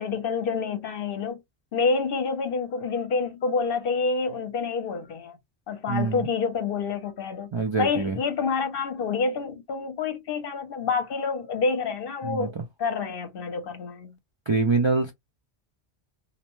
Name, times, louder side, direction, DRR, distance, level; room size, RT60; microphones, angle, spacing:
voice 1, 0.0-1.4 1.7-5.4 5.7-7.5 7.8-12.5 12.8-14.2, left 4 dB, 60° left, 0.8 m, -28 dB
voice 2, 5.9-6.3 7.5-8.2 12.2-12.5 14.5-15.1, right 4 dB, 45° right, 0.3 m, -24 dB
2.7 x 2.1 x 3.0 m
omnidirectional pair, 1.1 m